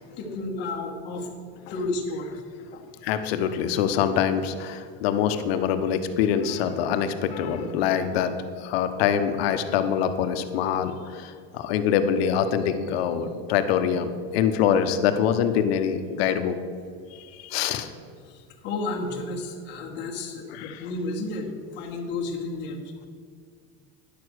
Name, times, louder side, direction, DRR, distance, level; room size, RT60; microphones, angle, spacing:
voice 1, 0.2-1.3 1.7-2.3 2.7-2.8 18.3-22.8, left 2 dB, 35° left, 0 dB, 1.5 m, -32 dB
voice 2, 3.0-16.6 17.1-17.9 20.5-20.9, left 8 dB, 90° left, 9 dB, 1.0 m, -25 dB
10.5 x 6.8 x 6.3 m, 2.1 s
cardioid pair, 170°, 30 cm